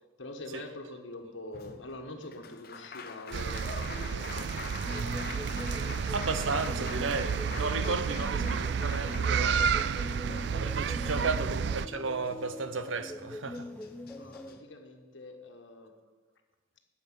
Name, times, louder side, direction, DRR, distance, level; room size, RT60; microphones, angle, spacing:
voice 1, 0.2-4.5 8.0-8.1 8.4-8.6 10.2-10.7 11.1-11.5 14.2-15.9, left 2 dB, 80° left, 1.5 m, -45 dB
Applause, 1.5-11.8 13.2-13.3 13.5-14.6, left 5 dB, 50° left, 0.8 m, -45 dB
sound 1, 3.3-11.9, right 6 dB, 60° right, 0.3 m, -31 dB
sound 2, 4.8-14.6, left 1 dB, 5° left, 0.5 m, -42 dB
voice 2, 6.1-10.1 10.5-13.7, right 4 dB, 90° right, 0.9 m, -34 dB
9.8 x 7.3 x 9.2 m
head